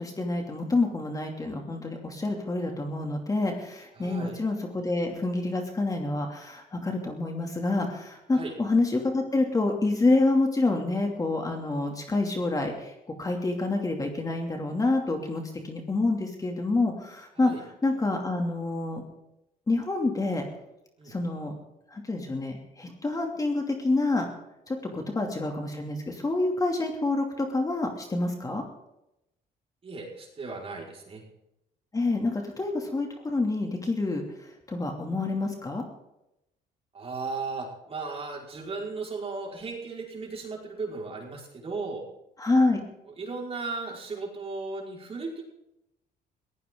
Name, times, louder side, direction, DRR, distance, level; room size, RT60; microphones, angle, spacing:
voice 1, 0.0-12.9 13.2-17.5 17.8-19.0 19.7-20.4 21.1-21.5 21.9-24.3 24.7-28.6 31.9-35.8 42.4-42.8, left 2 dB, 20° left, 2 dB, 2.8 m, -27 dB
voice 2, 4.0-4.4 8.3-8.5 17.4-17.6 21.0-21.2 24.8-25.1 29.8-31.2 36.9-42.0 43.2-45.4, right 3 dB, 35° right, -1 dB, 5.2 m, -36 dB
21.0 x 16.5 x 3.9 m, 0.87 s
cardioid pair, 110°, 17 cm